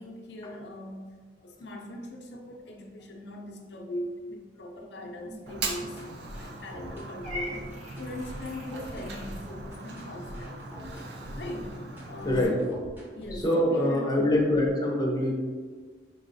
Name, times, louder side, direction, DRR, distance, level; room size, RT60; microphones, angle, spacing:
voice 1, 0.0-10.6 11.3-11.8 12.1-12.7 13.1-14.1 14.5-14.7, left 1 dB, 70° left, 1 dB, 0.6 m, -40 dB
sound 1, 5.5-13.5, equal, 10° right, 0.8 m, -44 dB
Fire, 5.5-12.4, right 3 dB, 65° right, 0.5 m, -40 dB
Purr / Meow, 7.2-9.5, left 1 dB, 45° right, 1.0 m, -41 dB
voice 2, 12.2-12.6 13.3-15.3, left 1 dB, 20° left, -1 dB, 0.6 m, -24 dB
4.6 x 3.1 x 2.6 m, 1.5 s
head